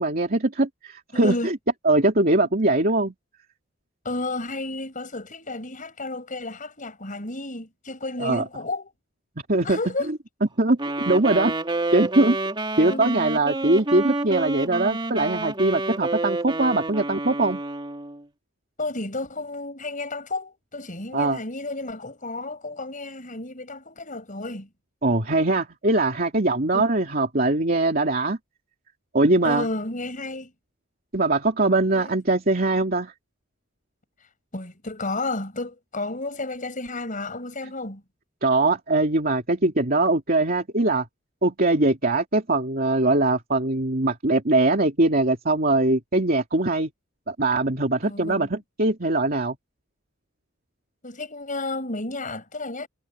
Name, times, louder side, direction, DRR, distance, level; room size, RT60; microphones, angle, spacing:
voice 1, 0.0-1.6 1.8-3.1 8.2-8.4 9.5-9.8 10.6-10.8 11.1-11.5 11.9-12.4 12.8-17.6 21.1-21.4 25.0-28.4 29.1-29.7 31.1-33.1 38.4-41.1 41.4-46.9 47.3-49.6, right 2 dB, 45° right, 2.8 m, -21 dB
voice 2, 1.1-1.5 4.0-8.9 9.6-10.1 12.9-13.2 18.8-24.7 26.7-26.8 29.4-30.5 31.9-32.1 34.5-38.0 48.0-48.5 51.0-52.9, left 2 dB, 40° left, 6.7 m, -32 dB
Wind instrument woodwind instrument, 10.8-18.2, right 2 dB, 25° right, 2.9 m, -29 dB
head